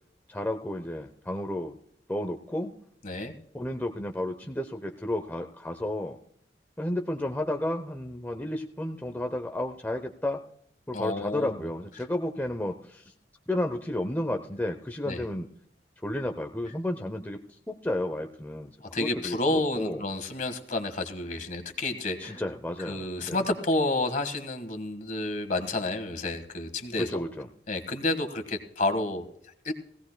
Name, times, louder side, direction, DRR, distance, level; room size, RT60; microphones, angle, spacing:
voice 1, 0.3-1.7 2.1-2.7 3.5-6.2 6.8-10.4 10.9-13.0 13.5-15.5 16.0-17.4 17.7-18.7 19.0-20.0 22.2-23.4 27.0-27.5, left 1 dB, 10° left, 4 dB, 0.7 m, -32 dB
voice 2, 3.0-3.3 10.9-11.6 15.0-15.2 18.8-22.4 22.8-27.2 27.7-29.2 29.6-29.7, left 2 dB, 45° left, 7 dB, 1.6 m, -30 dB
18.5 x 16.5 x 2.2 m, 0.66 s
head